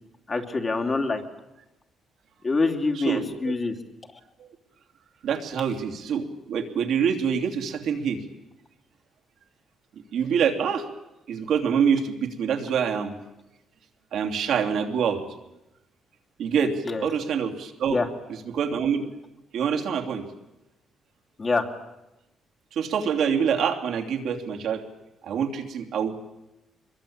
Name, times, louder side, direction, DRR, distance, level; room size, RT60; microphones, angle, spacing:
voice 1, 0.3-1.2 2.4-3.7 16.9-17.0 17.9-18.1 21.4-21.7, left 3 dB, 35° left, 3 dB, 3.1 m, -25 dB
voice 2, 2.9-3.5 5.2-8.2 10.1-10.8 11.3-13.2 14.1-15.2 16.4-18.0 18.5-19.1 19.5-20.2 22.7-24.8 25.2-26.2, right 7 dB, 75° right, 3 dB, 3.0 m, -25 dB
24.5 x 22.0 x 8.8 m, 0.93 s
cardioid pair, 90°, 0 cm